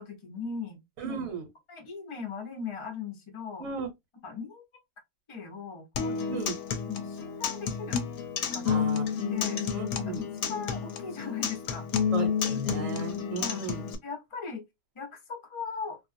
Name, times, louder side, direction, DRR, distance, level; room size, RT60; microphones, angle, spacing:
voice 1, 0.0-0.8 1.7-3.6 4.2-4.6 5.3-6.4 6.9-8.0 8.5-8.9 9.3-9.6 10.0-11.9 12.5-12.6 13.4-13.6 14.0-14.6 14.9-16.0, left 5 dB, 25° left, 0.6 m, -39 dB
voice 2, 1.0-1.5 3.6-3.9 6.3-6.5 8.6-9.1 9.7-10.3 12.1-13.9, right 3 dB, 65° right, 1.3 m, -35 dB
Acoustic guitar, 6.0-13.9, left 7 dB, 75° left, 1.0 m, -30 dB
2.6 x 2.4 x 2.5 m
omnidirectional pair, 1.6 m